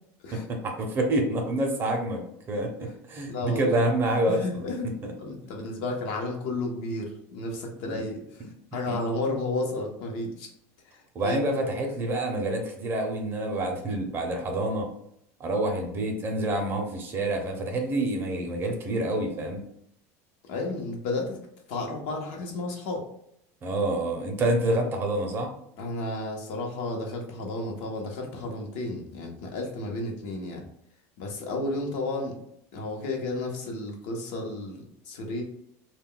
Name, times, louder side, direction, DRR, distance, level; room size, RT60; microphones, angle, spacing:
voice 1, 0.3-2.2 2.5-4.4 4.8-5.1 7.9-8.0 8.9-9.0 11.1-14.9 15.4-19.6 23.6-25.5, right 1 dB, 30° right, 3 dB, 0.6 m, -27 dB
voice 2, 3.3-3.8 4.3-4.9 5.2-10.5 10.8-11.4 11.9-12.0 20.4-21.4 21.7-23.0 25.8-30.7 31.2-32.4 32.7-35.4, left 2 dB, 70° left, 1 dB, 0.7 m, -32 dB
2.2 x 2.2 x 3.7 m, 0.73 s
cardioid pair, 145°, 8 cm